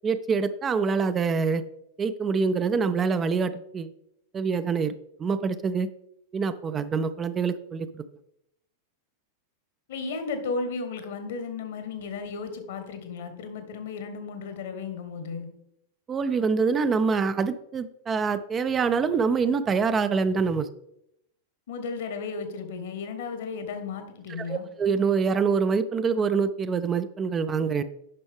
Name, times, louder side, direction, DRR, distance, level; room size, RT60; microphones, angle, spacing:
voice 1, 0.0-1.6 2.0-3.9 4.3-5.9 6.3-8.0 16.1-20.7 24.5-27.8, right 5 dB, 20° right, 12 dB, 0.4 m, -25 dB
voice 2, 9.9-15.5 21.7-24.7, left 4 dB, 55° left, 8 dB, 1.2 m, -34 dB
9.5 x 6.1 x 3.5 m, 0.78 s
figure-of-eight pair, 90°, 0 cm